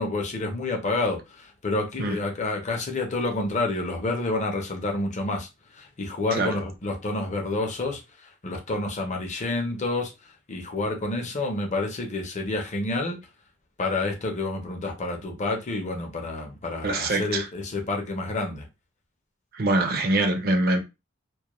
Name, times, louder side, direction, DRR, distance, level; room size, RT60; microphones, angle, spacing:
voice 1, 0.0-5.5 5.7-8.0 8.4-10.1 10.5-13.2 13.8-18.7, left 2 dB, 35° left, 0.6 m, -29 dB
voice 2, 16.8-17.5 19.5-20.8, right 2 dB, 50° right, 0.5 m, -24 dB
2.2 x 2.1 x 2.9 m
head